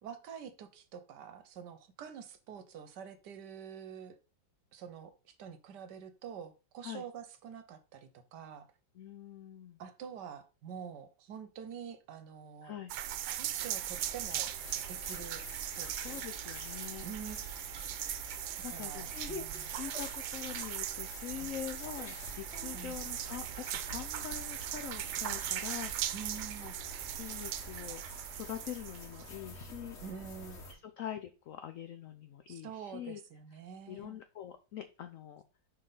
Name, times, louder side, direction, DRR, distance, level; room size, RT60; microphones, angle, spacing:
voice 1, 0.0-4.2 4.7-8.7 9.8-12.7 13.4-14.5 14.9-16.2 17.0-18.2 18.6-19.7 21.4-21.6 22.7-23.0 26.1-26.8 30.0-30.6 32.5-34.2, right 7 dB, 70° right, 1.3 m, -47 dB
voice 2, 8.9-9.8 12.6-12.9 16.0-17.1 18.6-19.1 19.7-26.1 26.6-28.0 28.3-30.0 30.7-33.2 33.9-35.4, left 10 dB, 80° left, 0.7 m, -44 dB
sound 1, 12.9-29.4, right 11 dB, 85° right, 1.3 m, -39 dB
sound 2, 13.9-30.7, left 1 dB, 40° left, 1.4 m, -48 dB
5.5 x 5.3 x 3.9 m
omnidirectional pair, 2.0 m